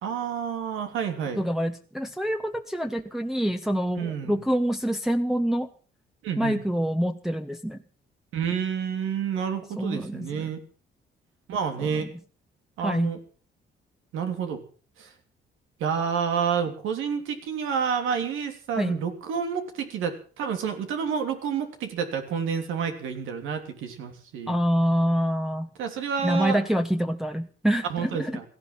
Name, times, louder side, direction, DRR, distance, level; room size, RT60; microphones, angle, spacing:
voice 1, 0.0-1.4 4.0-4.4 6.2-6.6 8.3-10.6 11.5-12.1 12.8-13.2 14.1-14.6 15.0-15.1 15.8-24.6 25.8-26.6 27.9-28.4, right 7 dB, 90° right, 6 dB, 3.2 m, -29 dB
voice 2, 1.4-5.7 6.4-7.8 9.8-10.5 11.8-12.0 12.8-13.1 18.8-19.0 24.5-25.7 26.2-28.4, equal, ahead, 4 dB, 1.1 m, -26 dB
17.0 x 14.0 x 5.8 m, 0.39 s
cardioid pair, 90°, 20 cm